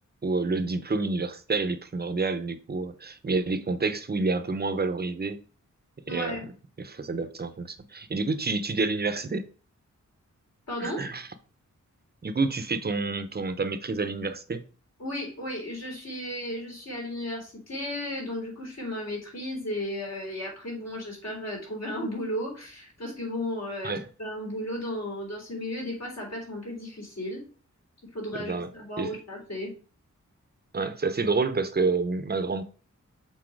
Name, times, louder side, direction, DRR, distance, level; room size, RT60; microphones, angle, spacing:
voice 1, 0.2-5.4 6.1-6.4 6.8-9.5 10.8-11.3 12.2-14.6 23.8-24.1 28.3-28.7 29.0-29.1 30.7-32.6, right 3 dB, 30° right, 0.8 m, -28 dB
voice 2, 6.1-6.5 10.7-11.1 15.0-27.5 28.1-29.7, left 1 dB, 55° left, 3.8 m, -34 dB
6.3 x 4.1 x 4.6 m
wide cardioid pair, 115°, 30 cm